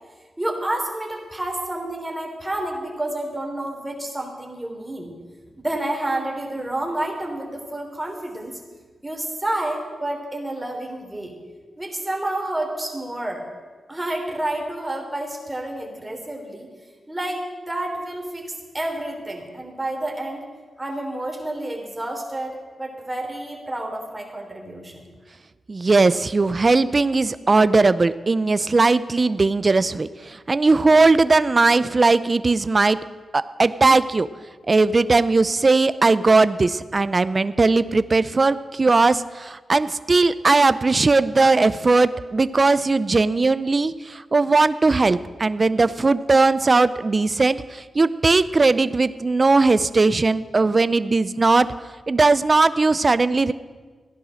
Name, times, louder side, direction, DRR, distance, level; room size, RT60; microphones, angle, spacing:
voice 1, 0.4-5.1 5.6-8.5 9.0-11.3 11.8-13.5 13.9-16.7 17.1-20.5 20.8-25.1, right 1 dB, 15° right, 2 dB, 3.3 m, -29 dB
voice 2, 25.7-33.0 33.3-34.3 34.7-51.7 52.1-53.5, right 3 dB, 40° right, 15 dB, 0.5 m, -18 dB
15.5 x 10.5 x 6.3 m, 1.4 s
cardioid pair, 75°, 0 cm